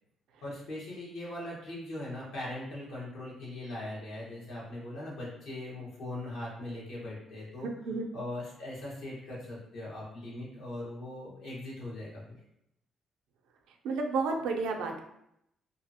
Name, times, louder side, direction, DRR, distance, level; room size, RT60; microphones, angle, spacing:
voice 1, 0.4-7.7 8.1-12.2, left 1 dB, 80° left, -5 dB, 1.1 m, -40 dB
voice 2, 13.8-15.0, right 4 dB, 90° right, 3 dB, 0.4 m, -31 dB
2.7 x 2.5 x 2.7 m, 0.79 s
cardioid pair, 90°, 0 cm